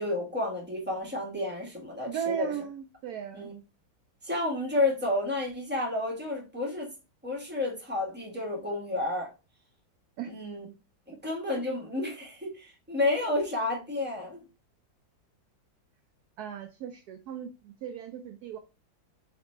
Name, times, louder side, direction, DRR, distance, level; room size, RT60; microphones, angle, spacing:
voice 1, 0.0-2.5 3.3-3.5 4.2-6.9 7.2-9.3 10.2-10.7 11.1-14.4, left 2 dB, 5° right, 1.3 m, -31 dB
voice 2, 2.1-3.5 10.2-10.3 16.4-18.6, right 9 dB, 75° right, 0.9 m, -36 dB
4.0 x 2.9 x 4.4 m
omnidirectional pair, 2.1 m